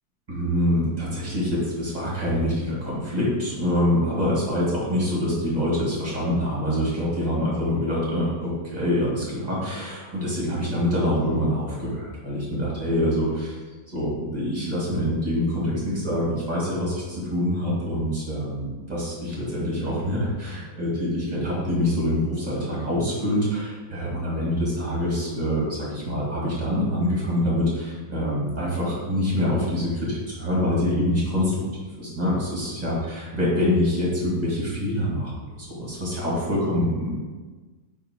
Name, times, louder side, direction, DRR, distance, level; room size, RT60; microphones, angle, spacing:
voice 1, 0.3-13.6 13.9-31.6 32.0-35.3 35.6-37.2, left 1 dB, 25° right, -6 dB, 2.2 m, -25 dB
8.4 x 3.0 x 4.5 m, 1.3 s
omnidirectional pair, 1.7 m